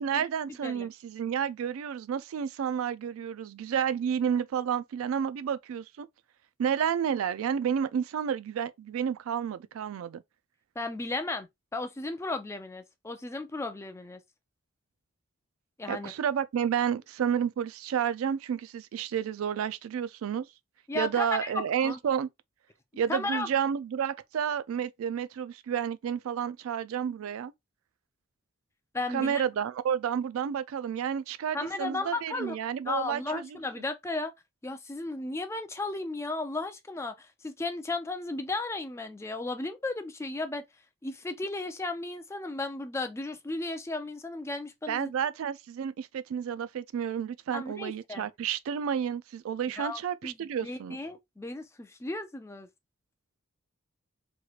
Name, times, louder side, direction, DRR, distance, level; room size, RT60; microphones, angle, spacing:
voice 1, 0.0-6.1 6.6-10.2 15.9-20.5 20.9-22.3 23.0-27.5 29.1-33.6 44.9-51.0, right 8 dB, 90° right, 0.3 m, -30 dB
voice 2, 10.8-14.2 15.8-16.1 20.9-22.0 23.1-23.5 28.9-29.4 31.5-32.6 32.9-34.3 34.6-40.6 41.0-45.1 47.5-48.3 49.7-50.3 50.6-52.7, left 2 dB, 15° left, 0.3 m, -35 dB
3.0 x 3.0 x 2.3 m
head